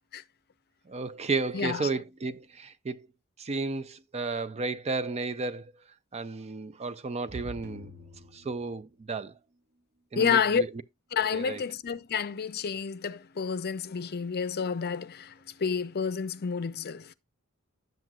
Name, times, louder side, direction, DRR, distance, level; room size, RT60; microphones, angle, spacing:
voice 1, 0.9-3.1 3.4-5.7 6.1-7.9 8.3-9.3 10.1-10.7 11.3-11.6, right 3 dB, 30° right, 0.5 m, -33 dB
voice 2, 1.5-1.9 10.2-10.6 11.1-17.1, left 6 dB, 45° left, 0.5 m, -29 dB
sound 1, 7.6-9.8, left 4 dB, 45° right, 1.3 m, -51 dB
10.5 x 7.6 x 2.3 m
head